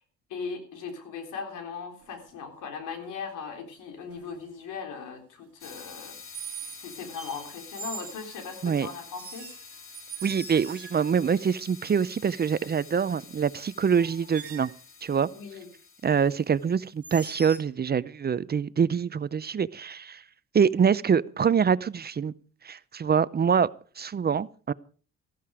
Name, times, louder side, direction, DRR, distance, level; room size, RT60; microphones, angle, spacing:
voice 1, 0.3-6.2 6.4-6.5 6.8-9.5 15.3-15.7, left 5 dB, 90° left, 3.6 m, -38 dB
sound 1, 2.0-2.3 4.1-4.4 6.3-6.8 7.1-8.2 9.1-11.2 13.4-13.5 13.9-14.8 17.0-17.7, right 5 dB, 50° right, 1.9 m, -42 dB
sound 2, 5.6-16.9, left 5 dB, 45° left, 2.4 m, -48 dB
voice 2, 10.2-14.7 15.0-15.3 16.0-20.2 20.5-22.3 22.6-23.7 24.0-24.7, right 7 dB, 35° right, 0.6 m, -25 dB
14.5 x 13.0 x 4.9 m
cardioid pair, 90°, 30 cm